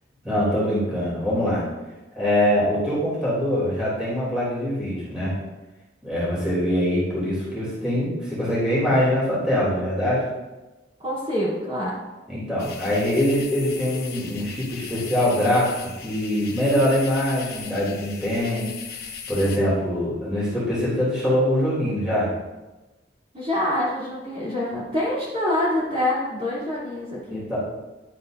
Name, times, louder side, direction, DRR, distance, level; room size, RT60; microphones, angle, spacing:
voice 1, 0.2-1.6 2.2-5.4 6.0-10.3 12.3-18.7 19.3-22.3 27.3-27.6, equal, 5° right, -9 dB, 3.1 m, -23 dB
voice 2, 11.0-12.0 23.3-27.4, left 1 dB, 30° right, -8 dB, 3.2 m, -26 dB
sound 1, 12.6-19.6, left 6 dB, 60° left, 1.1 m, -38 dB
10.5 x 7.9 x 2.6 m, 1.1 s
head